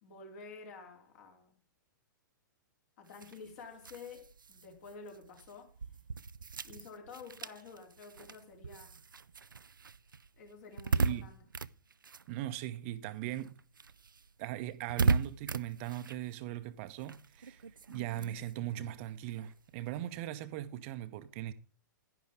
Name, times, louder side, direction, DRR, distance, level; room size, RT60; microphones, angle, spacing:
voice 1, 0.0-1.5 3.0-5.7 6.6-9.0 10.3-11.4, left 4 dB, 50° left, 3.3 m, -50 dB
sound 1, 3.1-13.0 13.3-20.2, right 4 dB, 80° right, 0.4 m, -38 dB
voice 2, 10.9-11.3 12.3-13.5 14.4-21.5, right 13 dB, 40° right, 0.8 m, -39 dB
10.5 x 10.5 x 3.7 m
figure-of-eight pair, 110°, 11 cm